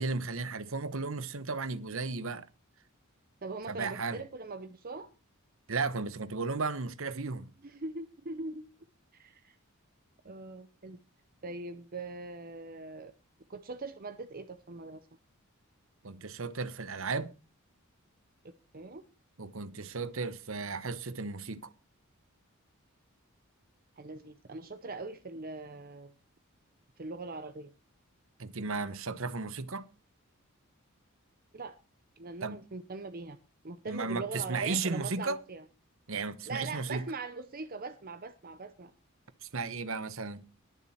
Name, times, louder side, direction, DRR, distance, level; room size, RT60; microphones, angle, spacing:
voice 1, 0.0-2.5 3.7-4.2 5.7-7.5 16.0-17.3 19.4-21.7 28.4-29.9 32.4-32.6 33.9-35.4 36.1-37.0 39.4-40.4, right 4 dB, 65° right, 1.1 m, -34 dB
voice 2, 3.4-5.1 7.6-8.6 9.1-9.6 10.2-11.0 11.4-13.1 13.5-15.0 18.7-19.0 24.0-26.1 27.0-27.7 31.5-31.8 32.2-33.4 33.6-35.6 36.5-38.9, right 3 dB, 45° right, 0.8 m, -41 dB
21.5 x 7.3 x 4.3 m
head